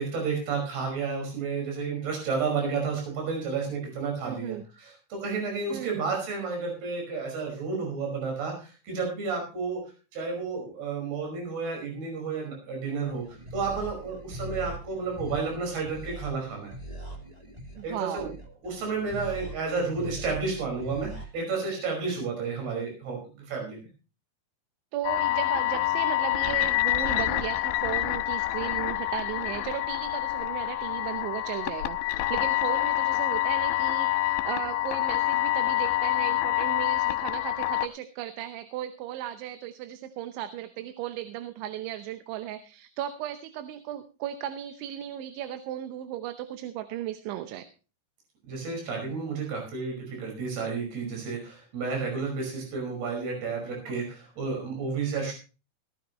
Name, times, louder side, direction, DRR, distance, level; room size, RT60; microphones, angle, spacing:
voice 1, 0.0-9.8 10.1-16.7 17.8-18.3 18.6-23.8 48.5-55.3, right 4 dB, 60° right, 1 dB, 7.3 m, -31 dB
voice 2, 4.2-4.6 5.7-6.1 17.7-18.4 24.9-47.7 53.9-54.0, right 11 dB, 90° right, 9 dB, 3.3 m, -36 dB
sound 1, 13.0-21.2, equal, 10° right, 1.9 m, -41 dB
sound 2, 25.0-37.9, left 15 dB, 80° left, 2.9 m, -27 dB
18.0 x 13.5 x 3.1 m, 0.33 s
omnidirectional pair, 5.2 m